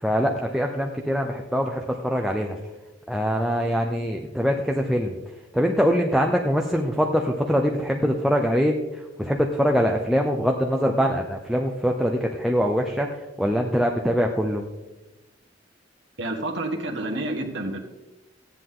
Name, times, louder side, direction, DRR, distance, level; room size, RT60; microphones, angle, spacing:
voice 1, 0.0-2.6 3.1-5.2 5.5-13.1 13.4-14.6, equal, ahead, 1 dB, 0.7 m, -23 dB
voice 2, 16.2-17.8, right 1 dB, 65° right, 1 dB, 1.5 m, -29 dB
14.0 x 10.0 x 3.8 m, 1.0 s
head